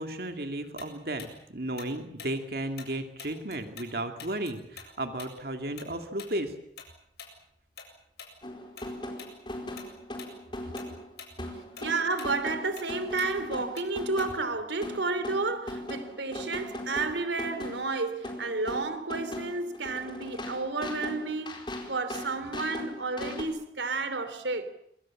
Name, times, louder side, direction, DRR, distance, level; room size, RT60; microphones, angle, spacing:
voice 1, 0.0-6.5, right 1 dB, 55° right, 2.4 m, -34 dB
Tick-tock, 0.8-3.9 4.2-8.9 9.2-9.4 9.8-10.3 10.6-14.6, left 6 dB, 65° left, 7.7 m, -47 dB
sound 1, 8.4-23.4, left 1 dB, 25° left, 4.4 m, -39 dB
voice 2, 11.8-24.7, right 3 dB, 85° right, 3.2 m, -31 dB
27.0 x 24.0 x 7.4 m
head